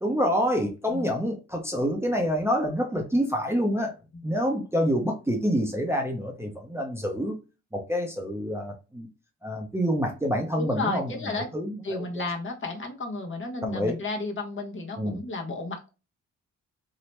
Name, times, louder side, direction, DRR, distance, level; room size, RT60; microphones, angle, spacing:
voice 1, 0.0-3.9 4.2-7.4 7.7-9.1 9.4-12.0 13.7-14.0 15.0-15.2, equal, 10° right, 1 dB, 0.6 m, -27 dB
voice 2, 10.6-11.5 11.8-15.9, left 3 dB, 40° left, 1 dB, 1.0 m, -33 dB
2.8 x 2.1 x 3.1 m, 0.30 s
cardioid pair, 75°, 30 cm